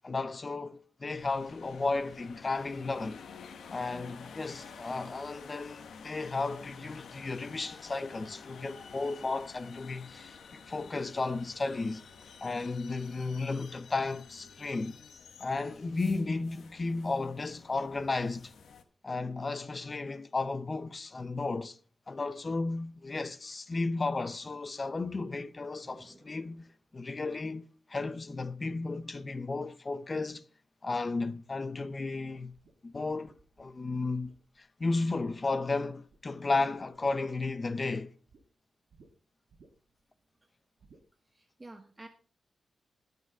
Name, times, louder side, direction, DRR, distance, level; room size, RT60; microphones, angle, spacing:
voice 1, 0.0-3.2 3.7-12.0 12.4-15.0 15.4-18.5 19.0-21.8 22.1-26.7 26.9-30.4 30.8-32.5 32.8-34.3 34.6-38.1, left 3 dB, 30° left, 0.7 m, -34 dB
sound 1, 1.1-18.8, left 6 dB, 85° left, 1.3 m, -50 dB
voice 2, 25.8-26.4 41.3-42.1, right 2 dB, 20° right, 1.1 m, -51 dB
sound 2, 32.3-35.5 35.8-36.4 36.7-38.4 38.9-39.1 39.5-40.0 40.8-41.1, right 4 dB, 70° right, 1.9 m, -62 dB
19.0 x 6.8 x 3.5 m
wide cardioid pair, 130°, 0 cm